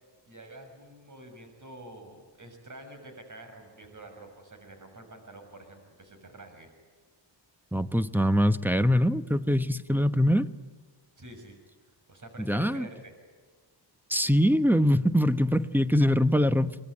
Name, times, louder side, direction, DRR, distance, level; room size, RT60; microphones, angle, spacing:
voice 1, 0.3-6.7 11.2-11.6 12.1-13.1, right 2 dB, 40° right, 6 dB, 6.6 m, -47 dB
voice 2, 7.7-10.5 12.4-12.9 14.1-16.8, equal, 5° right, 12 dB, 1.0 m, -23 dB
25.0 x 20.5 x 9.7 m, 1.5 s
cardioid pair, 85°, 44 cm